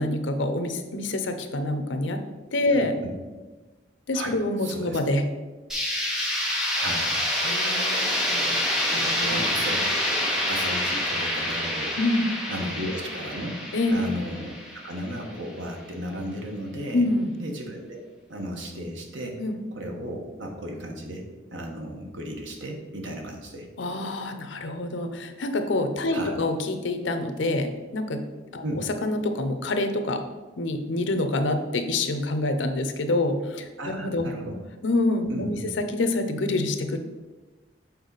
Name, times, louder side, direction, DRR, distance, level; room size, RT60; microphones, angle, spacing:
voice 1, 0.0-2.2 2.5-2.9 4.1-5.3 7.4-8.6 8.9-9.5 12.0-12.3 13.7-14.1 16.9-17.3 19.4-19.5 23.8-28.2 28.5-28.6 29.0-30.2 30.6-34.3 34.8-37.0, left 2 dB, 85° left, 8 dB, 0.7 m, -26 dB
voice 2, 2.7-3.1 4.1-4.3 4.6-5.0 6.7-7.2 9.3-12.0 12.5-13.6 13.9-14.6 14.8-17.0 17.4-18.0 18.3-19.4 19.7-21.2 21.5-23.7 26.1-26.4 28.6-28.8 33.8-34.6 35.3-35.7, equal, 90° right, 2 dB, 1.2 m, -34 dB
sound 1, 5.7-15.5, left 1 dB, 5° right, 1.0 m, -27 dB
6.9 x 4.4 x 4.0 m, 1.2 s
head